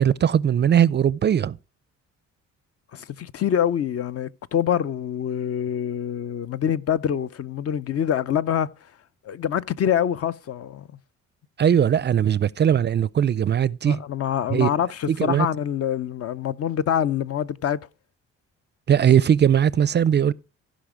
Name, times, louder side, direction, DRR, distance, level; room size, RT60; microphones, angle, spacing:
voice 1, 0.0-1.6 11.6-14.0 14.5-14.7 15.1-15.5 18.9-20.3, right 9 dB, 35° right, 0.4 m, -19 dB
voice 2, 2.9-8.7 9.2-10.9 13.9-17.9, left 9 dB, 50° left, 0.6 m, -25 dB
15.5 x 5.1 x 4.9 m
cardioid pair, 90°, 30 cm